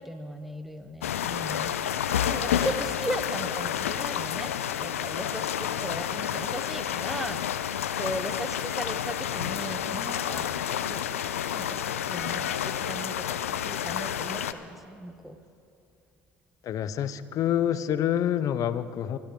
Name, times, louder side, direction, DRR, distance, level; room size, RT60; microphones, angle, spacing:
voice 1, 0.0-1.8 2.2-4.5 4.8-10.6 10.8-11.1 11.5-15.4, right 1 dB, ahead, 9 dB, 1.0 m, -37 dB
sound 1, 1.0-14.5, left 9 dB, 85° left, 0.5 m, -30 dB
voice 2, 16.6-19.2, left 10 dB, 50° left, 15 dB, 0.7 m, -27 dB
24.0 x 14.0 x 3.7 m, 2.4 s
hypercardioid pair, 65°, 7 cm